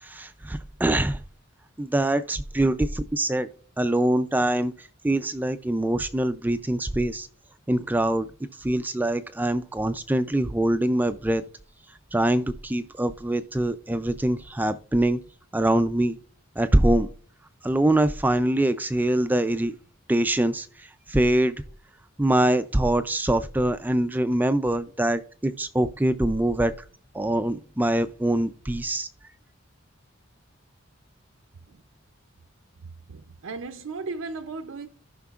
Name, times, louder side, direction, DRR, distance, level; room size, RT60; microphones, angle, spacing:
voice 1, 0.0-1.2 1.8-3.5 3.8-7.3 7.7-8.3 8.6-11.4 12.1-15.2 15.5-16.2 16.6-17.1 17.6-19.7 20.1-21.5 22.2-26.7 27.1-29.1, right 1 dB, 10° right, 0.3 m, -24 dB
voice 2, 32.8-34.9, right 4 dB, 80° right, 0.5 m, -36 dB
14.5 x 5.8 x 2.4 m
head